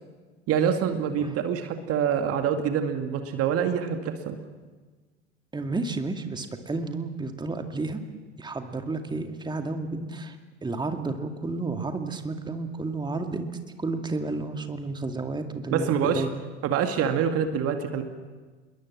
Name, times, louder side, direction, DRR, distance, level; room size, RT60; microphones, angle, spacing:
voice 1, 0.5-4.4 15.7-16.2 16.6-18.0, right 8 dB, 45° right, 7 dB, 2.2 m, -26 dB
voice 2, 5.5-8.0 8.4-13.5 13.8-16.3, right 3 dB, 15° right, 6 dB, 2.3 m, -31 dB
27.5 x 21.5 x 7.4 m, 1.4 s
figure-of-eight pair, 75°, 32 cm